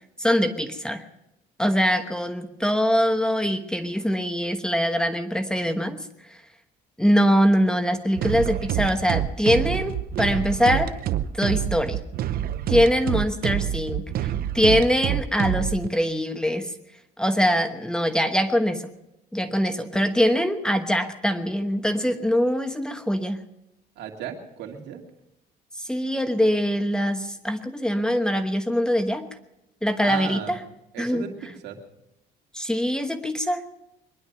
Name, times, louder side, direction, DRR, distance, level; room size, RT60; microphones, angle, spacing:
voice 1, 0.2-1.0 1.6-6.1 7.0-10.9 11.3-12.0 12.7-14.3 14.5-16.7 17.2-18.9 19.3-23.4 25.8-29.3 29.8-30.6 31.0-31.2 32.5-33.6, equal, 5° left, 7 dB, 1.2 m, -23 dB
sound 1, 8.2-15.9, right 11 dB, 60° right, 0.8 m, -27 dB
voice 2, 24.0-25.0 30.0-30.5 30.9-31.8, right 8 dB, 80° right, 3 dB, 2.4 m, -35 dB
22.5 x 11.0 x 5.7 m, 0.87 s
cardioid pair, 110°, 17 cm